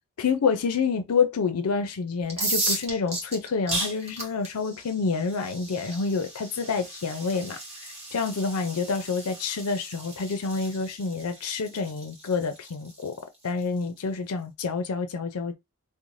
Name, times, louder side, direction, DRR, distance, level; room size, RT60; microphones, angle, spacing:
voice 1, 0.2-7.6 8.1-13.2 13.4-15.5, left 5 dB, 80° left, 0.5 m, -28 dB
sound 1, 2.2-14.0, right 2 dB, 30° right, 1.0 m, -35 dB
2.6 x 2.1 x 3.1 m
head